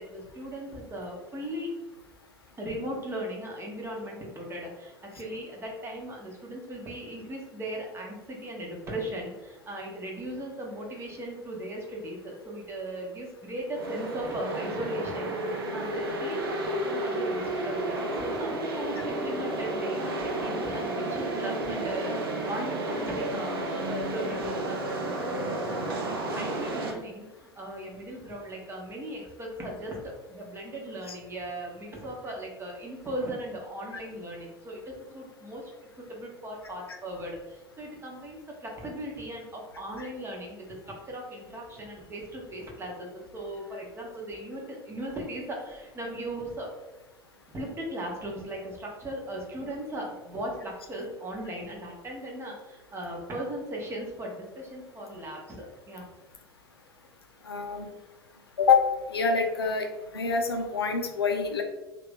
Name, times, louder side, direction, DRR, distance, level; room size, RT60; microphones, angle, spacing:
voice 1, 0.0-1.7 2.6-24.8 25.2-35.7 36.0-46.7 47.5-56.1, right 1 dB, 20° right, -1 dB, 0.9 m, -38 dB
sound 1, 13.7-26.9, right 2 dB, 70° right, 0.6 m, -31 dB
voice 2, 57.5-57.9 58.6-58.8 59.1-59.9 60.1-61.6, left 5 dB, 80° left, 4 dB, 0.4 m, -25 dB
3.1 x 2.5 x 3.4 m, 1.1 s
figure-of-eight pair, 75°, 13 cm